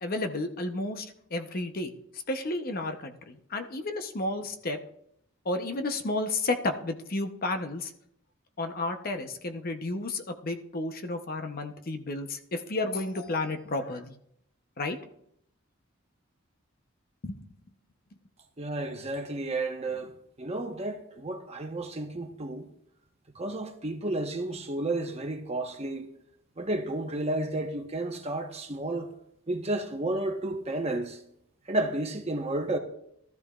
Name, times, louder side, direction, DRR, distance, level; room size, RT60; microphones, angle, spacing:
voice 1, 0.0-4.8 5.4-7.9 8.6-14.1 14.8-15.0 17.2-17.4, left 2 dB, 45° left, 0.8 m, -32 dB
voice 2, 18.6-22.7 23.3-26.1 26.6-29.1 29.5-31.2 31.7-32.8, right 2 dB, 30° right, 1.1 m, -32 dB
19.5 x 13.0 x 2.4 m
head